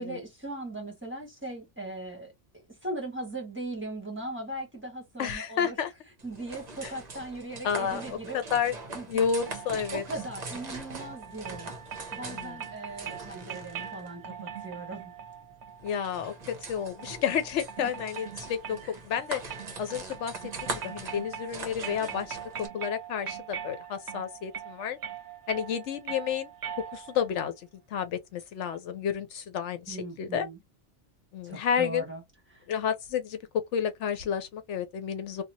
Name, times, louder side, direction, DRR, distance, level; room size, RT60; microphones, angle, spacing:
voice 1, 0.0-2.3 2.7-5.7 6.2-8.4 8.9-9.1 9.9-11.7 12.1-15.0 17.8-17.9 18.8-18.9 29.9-30.6 31.4-32.2 32.5-32.7, right 2 dB, 10° right, 1.3 m, -39 dB
voice 2, 5.2-5.9 6.8-6.9 7.6-8.7 9.1-10.0 12.2-12.6 15.8-19.4 19.8-20.3 20.6-22.4 22.7-25.0 25.5-26.5 26.8-30.5 31.3-32.0 32.7-35.4, left 8 dB, 75° left, 0.9 m, -31 dB
sound 1, 6.2-22.7, right 2 dB, 40° right, 0.8 m, -42 dB
sound 2, 9.5-27.3, right 8 dB, 70° right, 0.9 m, -42 dB
2.8 x 2.3 x 2.6 m
omnidirectional pair, 1.3 m